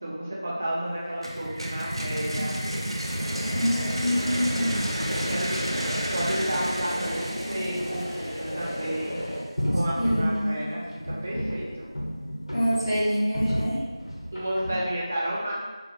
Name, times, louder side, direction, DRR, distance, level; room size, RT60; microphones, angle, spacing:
voice 1, 0.0-2.5 5.1-8.2 8.5-9.2 9.7-10.8 11.2-11.9 14.3-15.5, right 1 dB, 15° right, -6 dB, 0.5 m, -31 dB
sound 1, 0.9-1.0 1.4-1.5 2.1-2.2 2.5-2.6 2.8-2.9 3.2-4.6 4.9-6.8 7.7-7.9 8.6-8.7 9.6-14.8, equal, 80° left, 0.9 m, -33 dB
sound 2, 1.2-9.0, equal, 65° right, 0.7 m, -31 dB
sound 3, 3.2-9.4, equal, 25° left, 1.0 m, -34 dB
voice 2, 3.5-4.9 10.0-10.6 12.5-13.8, equal, 50° left, -11 dB, 1.5 m, -26 dB
4.7 x 2.3 x 3.3 m, 1.3 s
figure-of-eight pair, 175°, 3 cm